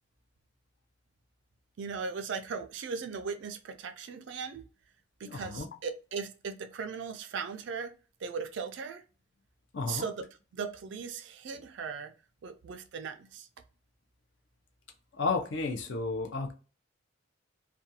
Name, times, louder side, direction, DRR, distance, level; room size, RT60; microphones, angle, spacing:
voice 1, 1.8-4.6 5.2-7.9 8.2-9.0 9.9-12.1 12.4-13.5, right 5 dB, 60° right, 0.3 m, -38 dB
voice 2, 5.2-5.7 9.7-10.0 15.1-16.5, left 3 dB, 60° left, 0.5 m, -32 dB
2.4 x 2.2 x 2.7 m
head